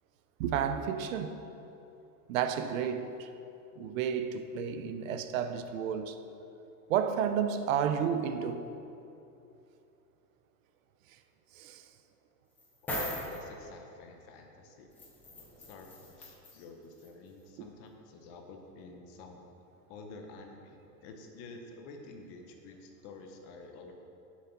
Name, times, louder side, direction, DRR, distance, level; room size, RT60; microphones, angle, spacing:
voice 1, 0.4-1.4 2.3-3.3 3.8-6.2 6.9-8.7 11.5-11.8 17.6-17.7, right 8 dB, 60° right, 0.7 m, -31 dB
sound 1, 12.6-13.4 15.0-16.6 17.0-17.1, left 1 dB, 5° left, 0.4 m, -38 dB
voice 2, 12.8-14.9 15.7-19.4 19.9-23.9, left 3 dB, 30° left, 0.8 m, -50 dB
8.2 x 7.4 x 5.8 m
supercardioid pair, 170°, 45 cm